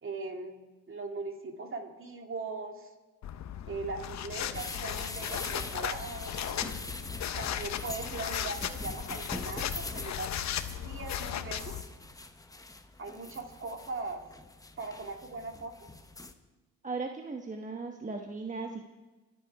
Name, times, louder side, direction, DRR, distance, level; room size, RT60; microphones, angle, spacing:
voice 1, 0.0-2.9 3.7-6.3 7.4-10.4 10.8-11.8 13.0-14.3 14.8-15.9, right 3 dB, 45° right, 3 dB, 2.5 m, -40 dB
sound 1, 3.2-11.8, left 10 dB, 65° left, 0.9 m, -36 dB
sound 2, 4.5-16.3, left 2 dB, 10° left, 1.0 m, -43 dB
voice 2, 16.8-18.8, right 4 dB, 25° right, 4 dB, 1.1 m, -37 dB
25.5 x 8.7 x 4.8 m, 1.2 s
cardioid pair, 90°, 30 cm